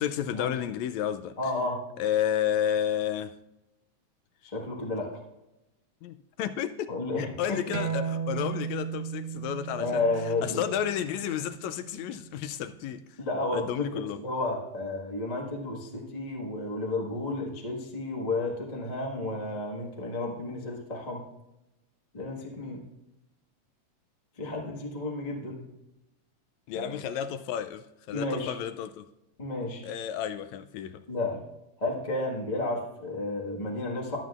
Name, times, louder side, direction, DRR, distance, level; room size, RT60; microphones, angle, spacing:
voice 1, 0.0-1.4 2.0-3.3 6.0-13.2 13.5-14.2 26.7-29.0 29.8-31.0, left 10 dB, 80° left, 1.7 m, -32 dB
voice 2, 1.4-1.8 4.4-5.2 6.9-7.8 9.7-10.7 13.2-21.2 22.1-22.8 24.4-25.6 26.7-26.9 28.1-28.5 29.4-29.8 31.1-31.4 31.8-34.2, left 2 dB, 30° left, 0.7 m, -32 dB
sound 1, 7.7-12.9, right 7 dB, 70° right, 2.0 m, -36 dB
21.5 x 7.6 x 2.4 m
omnidirectional pair, 3.4 m